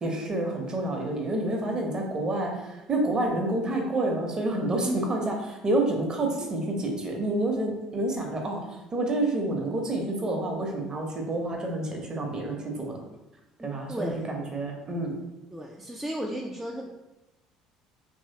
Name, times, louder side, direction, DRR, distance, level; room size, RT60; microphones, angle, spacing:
voice 1, 0.0-13.0 13.6-15.1, right 2 dB, 30° right, 1 dB, 0.8 m, -28 dB
voice 2, 4.8-5.1 13.6-14.3 15.5-16.9, right 1 dB, 10° right, -2 dB, 0.4 m, -34 dB
3.0 x 2.8 x 2.7 m, 0.98 s
figure-of-eight pair, 55°, 3 cm